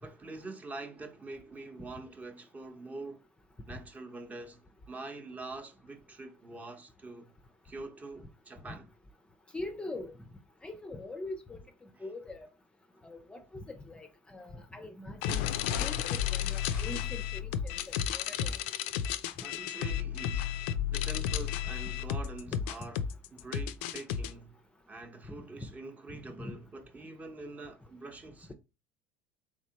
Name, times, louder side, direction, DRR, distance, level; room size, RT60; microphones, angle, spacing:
voice 1, 0.0-3.2 3.7-7.3 7.6-8.8 11.9-12.1 16.5-17.0 19.4-20.5 20.9-24.5 24.9-28.5, right 3 dB, 25° right, 0.8 m, -45 dB
voice 2, 9.5-10.1 10.6-11.6 12.0-12.5 13.0-15.4 15.8-17.7 18.0-18.6 22.5-22.6 26.4-26.5, left 2 dB, 15° left, 0.5 m, -42 dB
sound 1, 15.2-24.3, left 9 dB, 75° left, 0.4 m, -33 dB
3.6 x 3.2 x 2.8 m
supercardioid pair, 95°, 6 cm